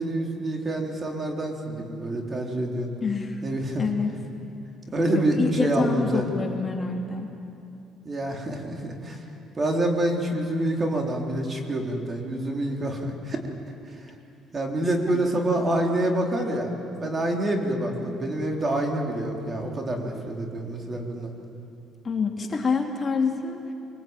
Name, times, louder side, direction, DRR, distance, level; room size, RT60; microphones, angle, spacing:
voice 1, 0.0-2.9 3.4-3.9 4.9-6.3 8.1-9.2 9.5-13.4 14.5-16.7 17.0-21.3, right 1 dB, 30° right, 1 dB, 3.9 m, -27 dB
voice 2, 3.0-3.4 3.8-4.2 5.1-7.3 15.1-15.2 22.0-23.6, left 4 dB, 30° left, 1 dB, 2.9 m, -27 dB
24.0 x 24.0 x 9.1 m, 2.7 s
cardioid pair, 105°, 0 cm